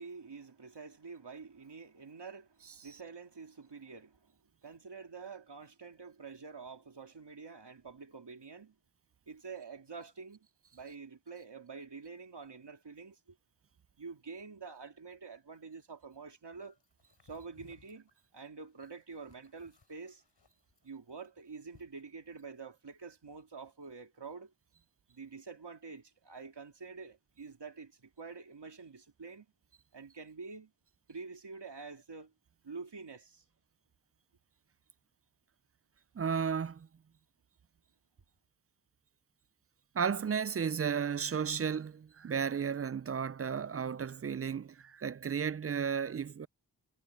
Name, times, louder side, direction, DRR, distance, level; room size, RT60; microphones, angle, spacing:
voice 1, 0.0-4.3 4.6-8.8 9.3-10.5 10.7-13.2 14.0-16.8 17.2-20.2 20.8-24.5 25.1-29.5 29.9-30.7 31.1-32.3 32.6-33.4, right 4 dB, 70° right, 2.6 m, -47 dB
Backpack Shuffling, 16.8-22.6, left 4 dB, 75° left, 5.6 m, -65 dB
voice 2, 36.2-36.9 39.9-46.5, right 7 dB, 35° right, 0.4 m, -33 dB
wide cardioid pair, 55°, 42 cm